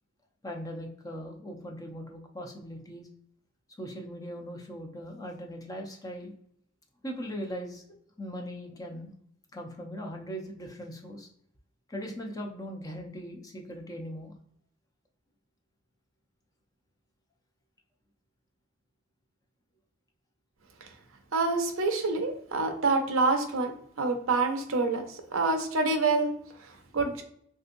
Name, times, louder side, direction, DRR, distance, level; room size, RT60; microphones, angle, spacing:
voice 1, 0.4-3.1 3.8-6.3 7.0-7.8 8.2-9.1 9.5-11.3 11.9-14.3, equal, 20° left, 2 dB, 0.6 m, -39 dB
voice 2, 21.3-23.7 24.0-26.3 26.9-27.2, right 3 dB, 90° right, 5 dB, 0.6 m, -27 dB
3.3 x 2.7 x 2.6 m, 0.66 s
head